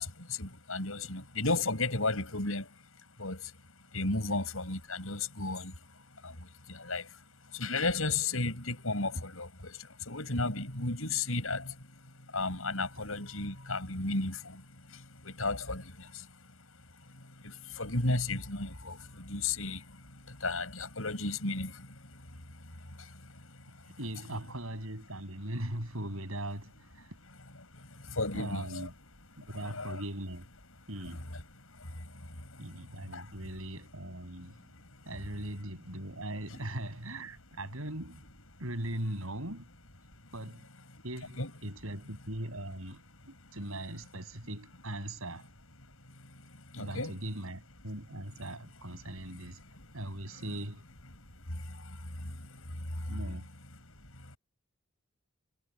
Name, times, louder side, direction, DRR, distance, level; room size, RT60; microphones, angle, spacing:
voice 1, 0.0-2.8 3.2-3.5 3.9-11.9 12.3-16.6 17.1-24.0 27.2-28.9 29.4-30.0 31.1-33.4 34.6-35.1 40.9-41.0 41.4-41.5 43.4-43.5 46.1-47.1 49.1-50.0 50.3-50.5 51.1-53.2 53.8-54.4, left 3 dB, 75° left, 6.8 m, -36 dB
voice 2, 24.0-27.2 28.3-28.9 29.4-30.4 30.9-31.3 32.6-34.6 35.1-38.2 38.6-39.7 40.3-40.7 41.0-43.0 43.3-45.5 46.8-49.6 49.9-50.8 53.1-53.5, right 1 dB, 75° right, 7.1 m, -40 dB
head